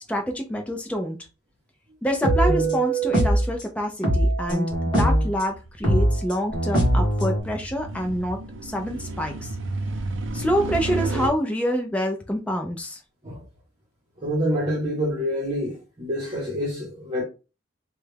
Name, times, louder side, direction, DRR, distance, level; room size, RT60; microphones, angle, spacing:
voice 1, 0.1-1.2 2.0-9.5 10.3-13.0, equal, 5° left, 0.4 m, -27 dB
sound 1, 2.2-3.5 4.0-5.3 5.8-7.4, right 1 dB, 25° left, 1.3 m, -21 dB
sound 2, 5.2-11.3, right 2 dB, 65° right, 0.5 m, -32 dB
voice 2, 14.2-17.2, equal, 30° right, 1.0 m, -27 dB
3.1 x 2.3 x 3.3 m
head